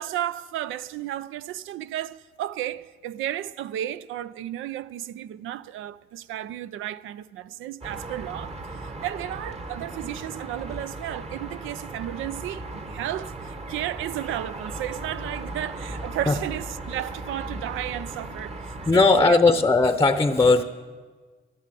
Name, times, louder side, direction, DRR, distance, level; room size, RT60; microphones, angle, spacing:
voice 1, 0.0-19.4, right 12 dB, 85° right, 0.5 m, -33 dB
sound 1, 7.8-18.9, right 2 dB, 30° right, 1.3 m, -37 dB
voice 2, 18.9-20.6, left 3 dB, 15° left, 0.7 m, -18 dB
12.0 x 11.0 x 7.6 m
cardioid pair, 90°, 20 cm